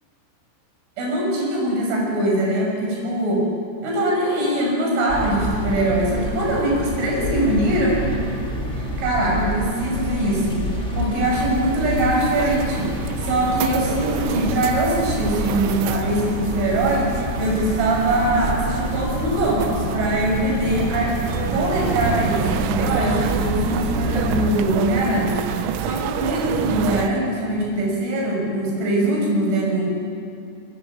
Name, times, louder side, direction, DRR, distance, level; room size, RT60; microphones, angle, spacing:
voice 1, 1.0-3.5 3.8-8.2 8.7-10.7 10.9-12.9 13.2-25.4 25.8-30.0, right 1 dB, 65° right, -1 dB, 8.7 m, -22 dB
sound 1, 5.1-24.5, equal, 20° left, 2.6 m, -28 dB
sound 2, 11.3-27.1, right 10 dB, 90° right, 3.8 m, -29 dB
28.5 x 20.5 x 8.6 m, 2.4 s
omnidirectional pair, 6.0 m